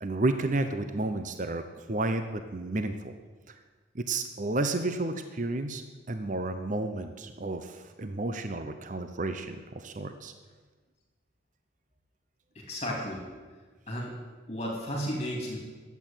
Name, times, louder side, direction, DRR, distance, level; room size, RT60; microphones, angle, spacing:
voice 1, 0.0-3.1 3.5-3.6 3.9-10.3, right 2 dB, 40° right, 8 dB, 0.7 m, -32 dB
voice 2, 12.5-13.2 13.9-14.1 14.5-15.6, equal, 35° left, -2 dB, 3.3 m, -33 dB
13.0 x 8.3 x 9.1 m, 1.4 s
head